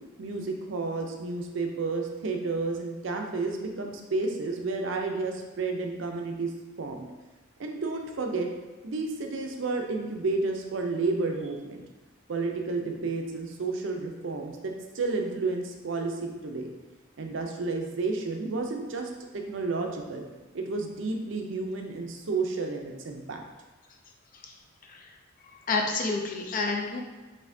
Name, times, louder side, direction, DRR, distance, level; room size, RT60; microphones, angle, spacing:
voice 1, 0.2-6.5 6.8-7.1 7.6-8.5 8.8-11.8 12.3-16.7 17.2-20.2 20.5-23.4, right 3 dB, 65° right, 3 dB, 0.5 m, -31 dB
voice 2, 25.4-27.1, left 3 dB, 45° left, 2 dB, 0.4 m, -29 dB
4.1 x 3.3 x 2.6 m, 1.2 s
head